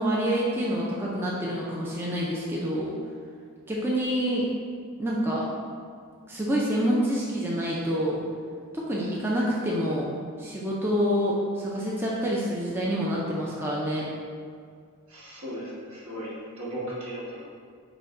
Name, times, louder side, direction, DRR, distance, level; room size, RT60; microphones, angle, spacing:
voice 1, 0.0-3.0 3.7-4.5 5.0-5.4 6.3-8.2 8.7-10.1 10.4-14.0, equal, 10° right, -6 dB, 0.4 m, -27 dB
voice 2, 15.1-17.4, equal, 70° right, -7 dB, 1.4 m, -36 dB
4.9 x 2.2 x 4.8 m, 2.1 s
head